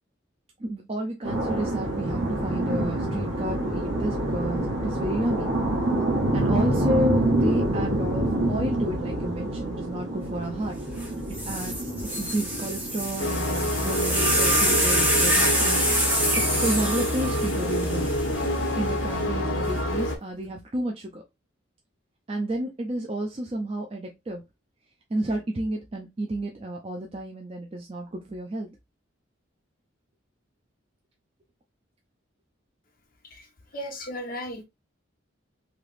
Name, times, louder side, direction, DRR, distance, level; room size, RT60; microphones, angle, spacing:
voice 1, 0.6-5.5 6.3-10.8 11.5-16.0 16.4-18.1 18.8-21.2 22.3-24.4 25.1-28.7, right 1 dB, 30° right, 0.4 m, -31 dB
sound 1, 1.2-20.1, right 1 dB, 70° right, 1.2 m, -28 dB
sound 2, 11.0-11.1 11.3-18.7 19.6-20.1, equal, 10° right, 0.8 m, -26 dB
sound 3, 13.2-20.2, left 1 dB, 75° left, 0.7 m, -27 dB
voice 2, 33.7-34.6, equal, 45° left, 0.9 m, -35 dB
3.2 x 2.9 x 2.4 m
head